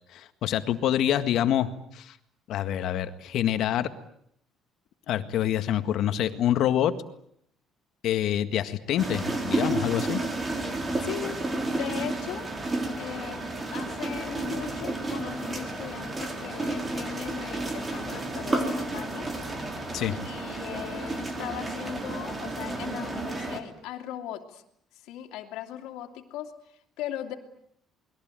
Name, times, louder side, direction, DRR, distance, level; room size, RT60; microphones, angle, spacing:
voice 1, 0.1-2.2 2.5-3.9 5.1-6.9 8.0-10.2 19.9-20.2, left 11 dB, 65° left, 9 dB, 1.8 m, -26 dB
sound 1, 9.0-23.6, right 2 dB, 20° right, 3.7 m, -31 dB
voice 2, 11.0-11.4 11.7-12.5 13.0-19.3 20.1-24.6 24.9-27.3, left 11 dB, 90° left, 2 dB, 2.7 m, -39 dB
28.5 x 21.0 x 9.1 m, 0.72 s
cardioid pair, 145°, 0 cm